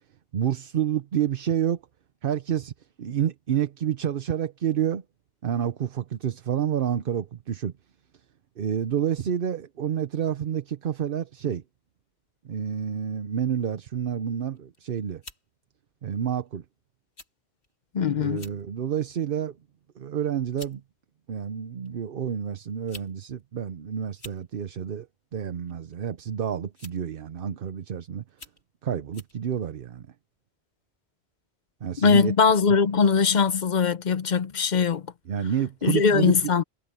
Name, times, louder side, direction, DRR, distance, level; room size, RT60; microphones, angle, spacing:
voice 1, 0.3-1.8 2.2-2.7 3.0-5.0 5.4-7.7 8.6-11.6 12.4-15.2 16.0-16.6 18.2-19.5 20.0-20.8 21.3-25.1 25.3-28.2 28.8-30.0 31.8-32.3 35.3-36.5, right 9 dB, 60° right, 0.9 m, -29 dB
sound 1, 14.5-14.8 15.2-15.4 16.3-16.5 17.2-17.3 17.6-17.7 18.3-18.6 19.1-19.4 20.2-20.3 20.6-20.8 21.8-21.9 22.7-23.1 23.4-23.5 24.1-24.4 25.7-25.9 26.7-27.1 27.7-27.8 28.3-28.6 29.1-29.4, left 2 dB, 85° left, 3.7 m, -46 dB
voice 2, 17.9-18.5 32.0-35.0 35.8-36.6, left 5 dB, 50° left, 0.8 m, -21 dB
omnidirectional pair, 1.1 m